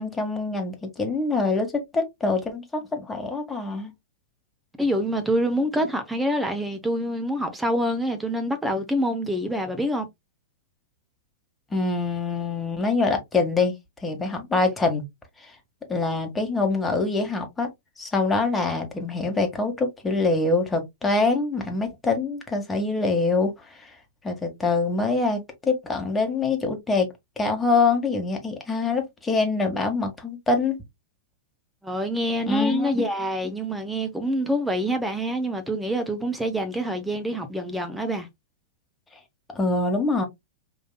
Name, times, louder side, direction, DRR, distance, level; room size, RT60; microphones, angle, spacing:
voice 1, 0.0-3.9 11.7-13.7 14.0-15.0 15.4-15.5 15.9-17.7 18.0-23.9 24.2-27.1 27.4-30.8 32.5-33.0 39.5-40.3, left 3 dB, 15° left, 1.7 m, -25 dB
voice 2, 4.8-10.1 31.8-38.3, equal, 5° right, 0.9 m, -26 dB
5.1 x 3.7 x 2.2 m
hypercardioid pair, 105°, 0 cm